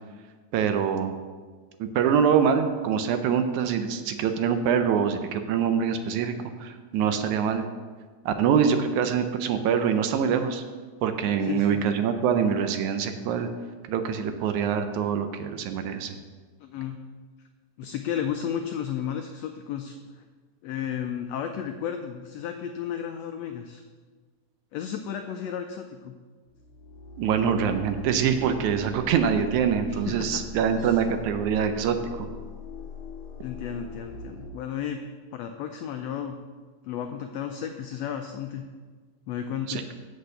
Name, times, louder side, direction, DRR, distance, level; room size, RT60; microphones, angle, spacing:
voice 1, 0.5-1.2 1.8-6.3 6.6-7.7 8.3-10.6 11.0-13.5 13.9-16.2 27.2-32.3 39.7-39.9, right 7 dB, 80° right, 8 dB, 2.0 m, -24 dB
voice 2, 11.4-11.8 16.6-17.0 17.8-20.0 20.6-23.8 24.7-26.1 29.9-30.4 30.8-31.0 33.4-35.0 35.3-36.4 36.8-38.7 39.3-39.8, left 9 dB, 90° left, 6 dB, 1.5 m, -33 dB
sound 1, 26.5-34.5, left 4 dB, 65° left, 1.3 m, -41 dB
7.8 x 6.3 x 6.6 m, 1.5 s
omnidirectional pair, 3.6 m